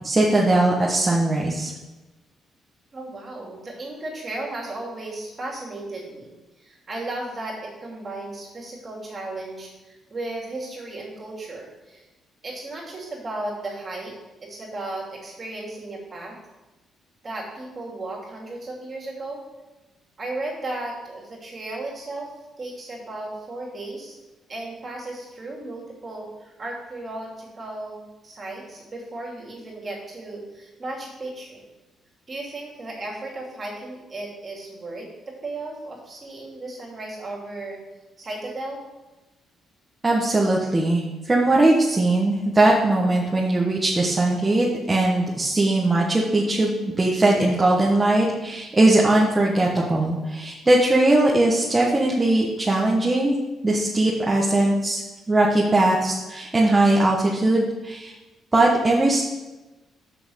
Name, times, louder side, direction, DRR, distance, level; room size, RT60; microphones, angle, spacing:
voice 1, 0.0-1.7 40.0-53.4 53.6-55.0 55.3-58.1 58.5-59.2, right 2 dB, 20° right, -4 dB, 1.3 m, -20 dB
voice 2, 2.9-12.0 12.4-14.1 14.4-16.4 17.2-19.4 20.2-22.3 22.6-24.1 24.5-31.6 32.3-37.8 38.2-38.8, right 2 dB, 35° right, -3 dB, 3.0 m, -35 dB
6.2 x 6.1 x 6.4 m, 1.1 s
cardioid pair, 90°, 0 cm